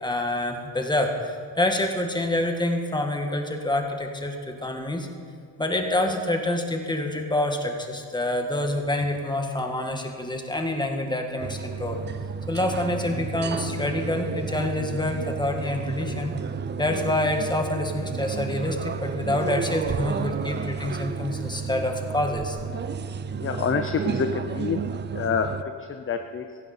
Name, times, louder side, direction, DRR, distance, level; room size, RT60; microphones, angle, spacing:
voice 1, 0.0-5.1 5.6-12.0 12.5-16.3 16.8-22.6, left 1 dB, 10° left, 3 dB, 1.8 m, -27 dB
sound 1, 11.4-25.6, right 6 dB, 25° right, 0.4 m, -32 dB
voice 2, 23.4-24.8 25.1-26.6, left 6 dB, 25° left, 7 dB, 0.7 m, -27 dB
17.5 x 14.5 x 4.4 m, 2.2 s
cardioid pair, 125°, 49 cm